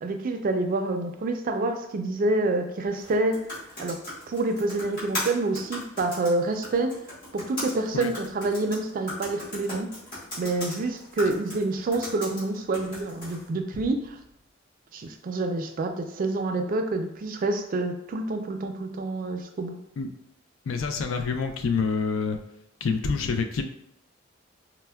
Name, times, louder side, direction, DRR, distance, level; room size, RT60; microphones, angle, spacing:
voice 1, 0.0-3.4 3.8-4.0 4.3-6.9 7.3-9.9 10.4-14.1 14.9-19.8, right 2 dB, 45° right, 5 dB, 0.3 m, -27 dB
sound 1, 2.9-13.5, left 1 dB, 45° left, 1.4 m, -38 dB
voice 2, 20.7-22.4 22.8-23.6, left 5 dB, 80° left, 7 dB, 0.4 m, -27 dB
4.2 x 2.0 x 2.2 m, 0.74 s
head